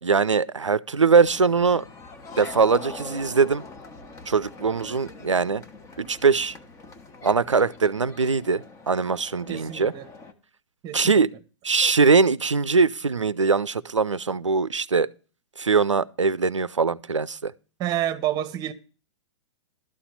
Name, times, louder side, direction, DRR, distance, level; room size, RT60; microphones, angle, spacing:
voice 1, 0.0-1.8 2.4-3.6 4.3-5.6 6.0-6.6 7.2-9.9 10.9-11.3 11.6-15.1 15.6-17.5, right 5 dB, 90° right, 0.5 m, -21 dB
sound 1, 1.2-10.3, left 3 dB, 20° left, 1.2 m, -43 dB
voice 2, 9.5-10.1 10.8-11.2 17.8-18.7, right 12 dB, 25° right, 1.0 m, -28 dB
12.5 x 4.2 x 8.0 m
figure-of-eight pair, 110°, 15 cm